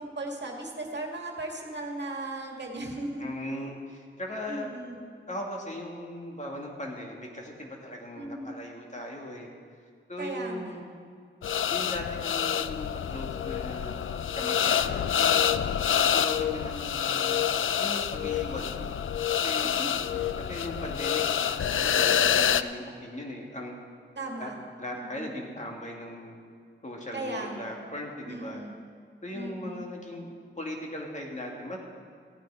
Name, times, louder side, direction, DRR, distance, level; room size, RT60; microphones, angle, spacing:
voice 1, 0.0-3.2 4.5-5.0 8.1-8.5 10.2-10.8 19.6-20.5 24.2-24.6 24.9-25.4 27.1-27.8 28.3-28.8 29.3-29.9, right 2 dB, 55° right, 1 dB, 1.9 m, -37 dB
voice 2, 3.2-4.7 5.3-9.5 10.1-10.9 11.7-15.4 16.0-17.5 17.8-19.0 19.4-19.7 20.4-23.8 24.4-24.5 24.8-26.4 26.8-28.6 29.2-31.9, left 1 dB, 35° left, -1 dB, 2.2 m, -38 dB
sound 1, 11.4-22.6, left 9 dB, 70° left, 0.4 m, -27 dB
15.5 x 9.1 x 4.9 m, 2.2 s
wide cardioid pair, 60°, 21 cm